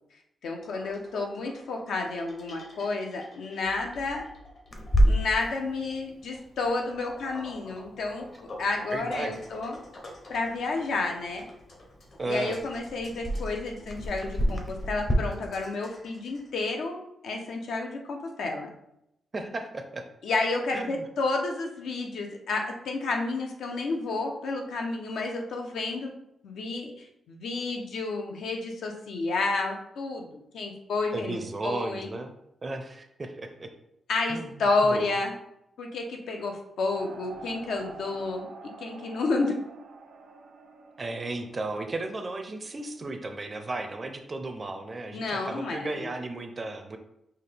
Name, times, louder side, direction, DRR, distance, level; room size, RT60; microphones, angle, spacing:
voice 1, 0.4-4.3 5.0-8.3 8.6-9.8 10.3-11.4 12.3-18.7 20.2-26.1 26.4-32.1 34.1-35.3 35.8-38.5 38.8-39.6 45.1-46.2, left 3 dB, 80° left, 2 dB, 0.7 m, -30 dB
sound 1, 0.6-16.7, left 2 dB, 50° left, 1.0 m, -49 dB
Clock, 4.7-15.1, equal, 20° left, 0.6 m, -31 dB
voice 2, 8.9-9.3 12.2-12.6 19.3-20.0 20.7-21.1 31.1-32.3 32.6-33.7 34.3-35.1 41.0-47.0, right 2 dB, 25° right, 6 dB, 0.4 m, -34 dB
sound 2, 36.9-43.0, right 4 dB, 75° right, 0.6 m, -47 dB
5.6 x 2.3 x 3.3 m, 0.82 s
wide cardioid pair, 150°, 0 cm